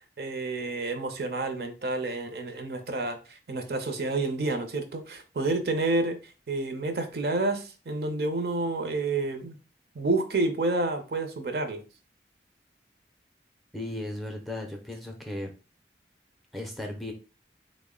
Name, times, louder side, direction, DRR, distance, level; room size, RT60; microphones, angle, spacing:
voice 1, 0.2-9.6 9.9-11.8, right 2 dB, 60° right, 7 dB, 0.6 m, -29 dB
voice 2, 13.7-15.5 16.5-17.1, left 1 dB, ahead, 2 dB, 0.5 m, -36 dB
3.5 x 2.1 x 3.6 m, 0.33 s
head